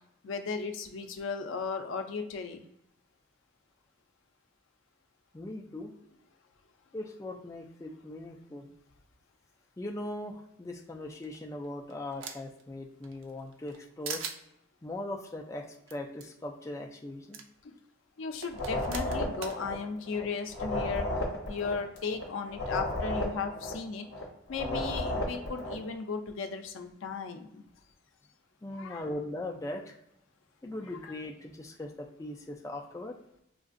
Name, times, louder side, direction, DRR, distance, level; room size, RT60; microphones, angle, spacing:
voice 1, 0.2-2.6 17.6-17.7 18.2-21.1 21.5-24.1 24.5-27.6 28.7-29.1, left 5 dB, 75° left, 6 dB, 0.4 m, -36 dB
voice 2, 5.3-5.9 6.9-8.7 9.8-14.2 14.8-17.4 28.6-29.9 30.6-33.2, left 1 dB, 15° left, 1 dB, 0.3 m, -40 dB
sound 1, 11.2-12.6 13.0-13.8 14.0-14.4 15.9-16.0 16.2-16.3 17.3-17.4 18.4-19.6, right 6 dB, 85° right, 0.4 m, -40 dB
sound 2, 18.5-20.2 20.5-24.2 24.5-25.9, left 1 dB, 55° left, 0.8 m, -34 dB
3.7 x 2.5 x 2.5 m, 0.79 s
head